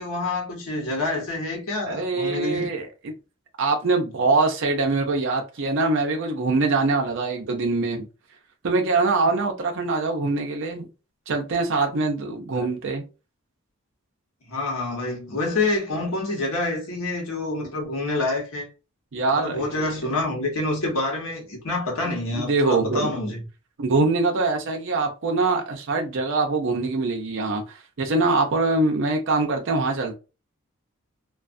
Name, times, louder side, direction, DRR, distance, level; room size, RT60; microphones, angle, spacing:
voice 1, 0.0-2.7 12.5-12.7 14.5-18.7 19.3-23.4, left 2 dB, 80° left, 1.1 m, -27 dB
voice 2, 1.9-3.1 3.6-8.0 8.6-10.9 11.3-13.0 19.1-19.9 22.1-23.1 23.8-30.2, right 3 dB, 65° right, 0.5 m, -23 dB
2.4 x 2.3 x 2.4 m
head